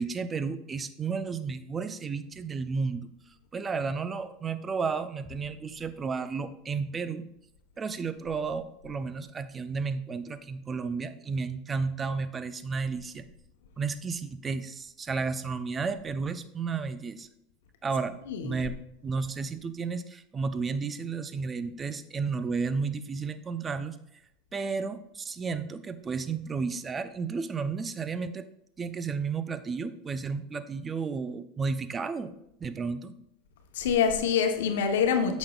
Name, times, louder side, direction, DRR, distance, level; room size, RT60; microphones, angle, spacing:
voice 1, 0.0-3.1 3.5-7.2 7.8-13.3 13.8-17.3 17.8-18.1 18.4-18.8 19.0-24.0 24.5-28.5 28.8-33.2, right 5 dB, 25° right, 12 dB, 0.5 m, -32 dB
voice 2, 18.3-18.6 33.7-35.4, left 7 dB, 80° left, 5 dB, 0.9 m, -25 dB
8.5 x 6.2 x 2.4 m, 0.77 s
supercardioid pair, 110°, 0 cm